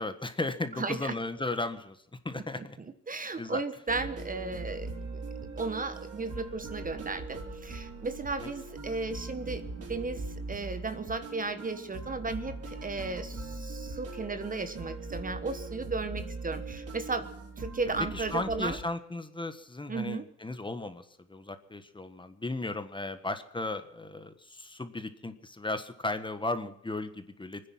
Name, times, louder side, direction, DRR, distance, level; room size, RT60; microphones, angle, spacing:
voice 1, 0.0-2.0 2.2-2.8 3.4-3.6 8.4-8.5 18.1-27.7, left 2 dB, 15° left, 9 dB, 1.5 m, -35 dB
voice 2, 0.7-1.1 2.3-4.9 5.6-9.6 9.9-17.3 17.6-18.8 19.9-20.2, right 3 dB, 25° right, 11 dB, 1.3 m, -35 dB
sound 1, 3.9-18.8, right 3 dB, 55° right, 5.1 m, -40 dB
24.5 x 10.0 x 5.9 m, 0.73 s
cardioid pair, 90°, 30 cm